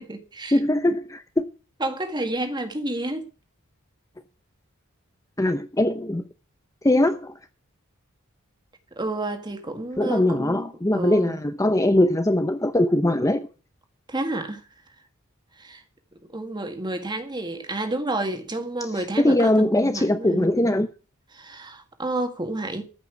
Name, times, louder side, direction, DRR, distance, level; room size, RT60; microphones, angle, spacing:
voice 1, 0.0-0.6 1.8-3.2 9.0-11.5 14.1-14.6 15.6-15.8 16.3-20.5 21.3-22.8, right 2 dB, 20° right, 1.9 m, -30 dB
voice 2, 0.5-1.4 5.4-6.2 6.8-7.3 10.0-13.5 19.2-20.9, left 1 dB, 15° left, 0.6 m, -21 dB
14.0 x 6.0 x 7.3 m
head